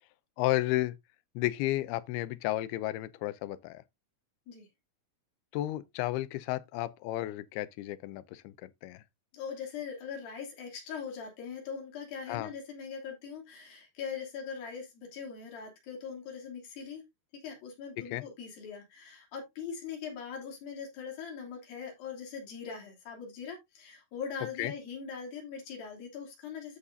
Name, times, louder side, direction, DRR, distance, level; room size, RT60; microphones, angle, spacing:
voice 1, 0.4-1.0 1.4-3.8 5.5-9.0 12.3-12.5 18.1-18.2 24.6-24.7, left 16 dB, 85° left, 2.5 m, -32 dB
voice 2, 9.3-17.0 17.3-26.8, left 6 dB, 65° left, 4.6 m, -41 dB
13.0 x 4.9 x 2.7 m
omnidirectional pair, 4.6 m